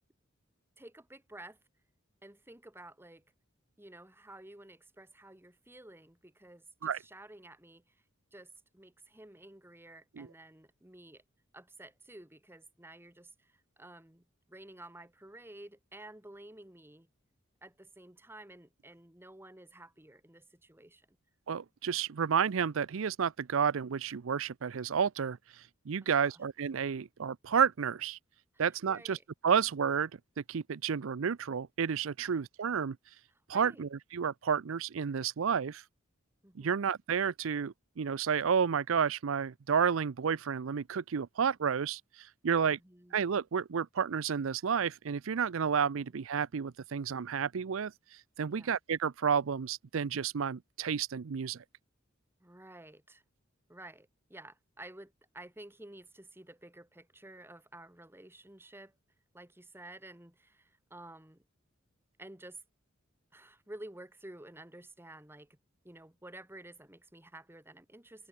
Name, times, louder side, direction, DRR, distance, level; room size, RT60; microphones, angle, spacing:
voice 1, 0.8-1.6 2.2-3.2 3.8-7.9 8.3-11.2 11.5-17.1 17.6-21.2 26.0-26.4 28.5-29.2 32.2-32.4 33.3-33.9 36.4-36.9 42.6-43.2 48.5-48.8 52.4-53.2 53.7-59.0 59.3-61.4 62.2-62.6 63.3-65.6 65.8-68.3, right 1 dB, 10° right, 2.0 m, -52 dB
voice 2, 21.5-25.4 25.9-28.2 28.6-29.2 29.4-30.1 30.4-33.0 33.5-35.8 36.6-42.8 43.1-47.9 48.4-51.6, right 7 dB, 75° right, 0.5 m, -31 dB
head